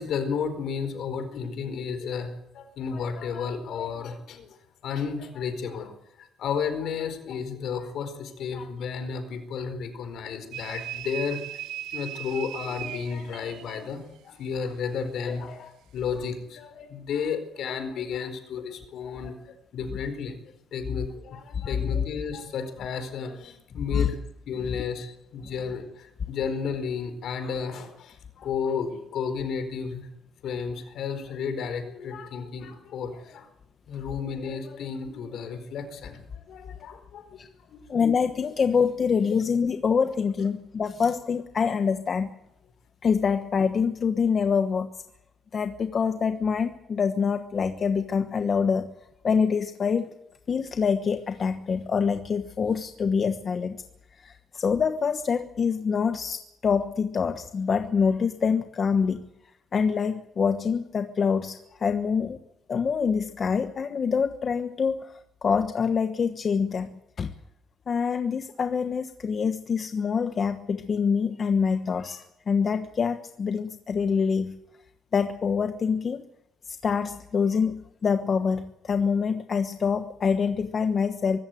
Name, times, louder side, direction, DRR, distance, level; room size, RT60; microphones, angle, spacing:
voice 1, 0.0-4.5 4.8-5.9 6.2-11.6 11.9-19.4 19.7-20.4 20.7-24.2 24.5-30.1 30.4-33.5 33.9-37.4 37.7-37.9, left 6 dB, 60° left, 9 dB, 4.5 m, -32 dB
sound 1, 10.5-13.8, right 13 dB, 90° right, 1.3 m, -37 dB
voice 2, 37.9-42.3 43.0-45.0 45.5-48.9 49.2-50.1 50.5-53.8 54.2-59.2 59.7-62.4 62.7-65.1 65.4-66.9 67.2-67.3 67.9-74.5 75.1-76.2 76.7-81.4, left 6 dB, 35° left, 8 dB, 1.2 m, -25 dB
24.0 x 14.5 x 9.3 m, 0.87 s
cardioid pair, 150°, 0 cm